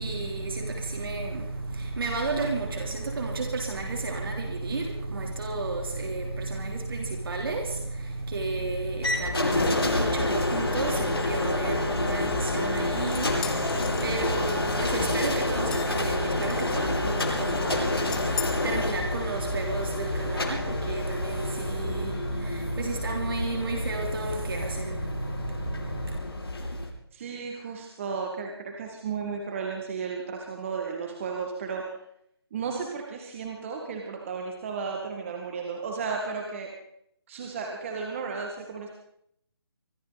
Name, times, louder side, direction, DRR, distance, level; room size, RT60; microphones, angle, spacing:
voice 1, 0.0-26.2, right 3 dB, 60° right, 3.7 m, -31 dB
sound 1, 9.0-26.9, left 2 dB, 65° left, 7.6 m, -29 dB
sound 2, 12.8-14.9 15.3-16.0 16.4-16.9 17.2-17.7 18.1-18.5, left 7 dB, 5° left, 0.7 m, -38 dB
voice 2, 27.1-32.0 32.5-36.7 37.3-38.9, right 5 dB, 30° right, 2.0 m, -34 dB
24.0 x 14.5 x 4.1 m
figure-of-eight pair, 160°, 14 cm